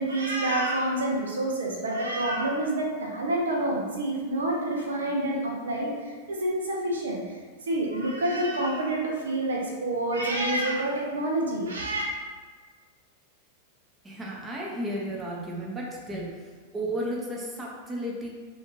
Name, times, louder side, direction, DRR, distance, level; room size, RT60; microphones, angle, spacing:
voice 1, 0.0-5.9 6.3-7.2 7.7-12.0, right 1 dB, 70° right, -1 dB, 0.5 m, -28 dB
voice 2, 14.0-16.4 16.7-18.3, right 1 dB, 15° right, -3 dB, 0.6 m, -33 dB
2.5 x 2.4 x 3.0 m, 1.5 s
figure-of-eight pair, 90°, 0 cm